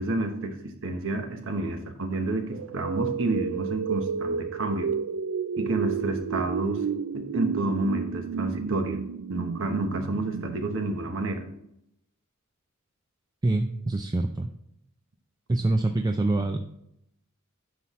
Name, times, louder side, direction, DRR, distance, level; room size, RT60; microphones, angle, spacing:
voice 1, 0.0-4.9 5.6-6.8 7.1-9.0 9.3-11.4, right 2 dB, 65° right, 6 dB, 1.1 m, -29 dB
sound 1, 2.5-11.4, right 6 dB, 85° right, 0.4 m, -32 dB
voice 2, 13.4-14.5 15.5-16.6, right 2 dB, 20° right, 5 dB, 0.4 m, -25 dB
9.6 x 5.8 x 3.1 m, 0.78 s
head